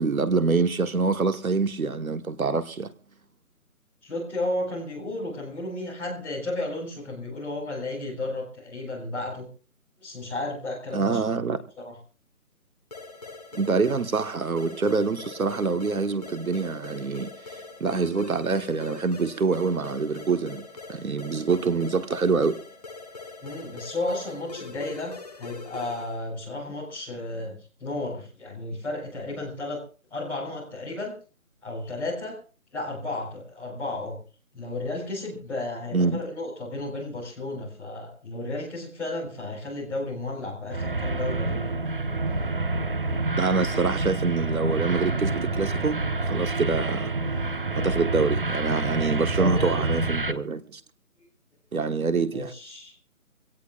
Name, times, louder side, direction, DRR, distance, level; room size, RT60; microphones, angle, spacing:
voice 1, 0.0-2.9 10.9-11.6 13.5-22.6 35.9-36.2 43.3-47.1 47.8-50.8 51.7-52.5, right 4 dB, 75° right, 1.4 m, -26 dB
voice 2, 4.0-9.5 10.0-11.2 11.8-11.9 23.4-29.8 30.1-31.1 31.6-32.4 32.7-34.2 34.5-41.7 49.0-49.9 52.3-52.9, left 2 dB, 5° left, 4.2 m, -33 dB
sound 1, 12.9-26.2, left 3 dB, 25° left, 1.4 m, -42 dB
sound 2, 40.7-50.3, right 2 dB, 40° right, 1.0 m, -27 dB
25.0 x 17.5 x 2.4 m
figure-of-eight pair, 175°, 43 cm